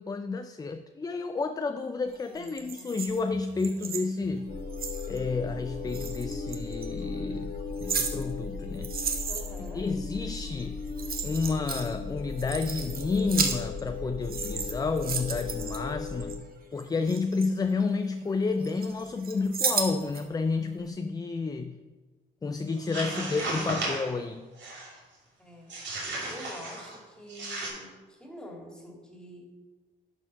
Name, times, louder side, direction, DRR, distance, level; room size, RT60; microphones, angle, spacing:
voice 1, 0.0-4.6 5.1-7.5 7.8-8.9 9.7-10.8 11.2-16.5 16.7-21.8 22.4-24.5, left 4 dB, 20° left, 9 dB, 0.4 m, -30 dB
voice 2, 2.3-3.0 9.3-9.9 23.0-23.4 25.4-25.8 26.3-29.5, equal, 5° left, -1 dB, 2.3 m, -46 dB
sound 1, 2.4-5.2 5.9-6.9 7.5-9.7 10.6-10.7 10.9-11.9 12.2-14.0 14.2-16.3 16.8-18.2 18.6-20.2 20.6-20.7, right 6 dB, 50° right, 1.1 m, -34 dB
sound 2, 4.5-16.4, left 4 dB, 55° left, 1.9 m, -36 dB
sound 3, 22.7-24.1 24.6-25.0 25.7-27.0 27.3-27.7, right 2 dB, 65° right, 3.0 m, -34 dB
11.0 x 4.5 x 5.3 m, 1.3 s
cardioid pair, 90°, 20 cm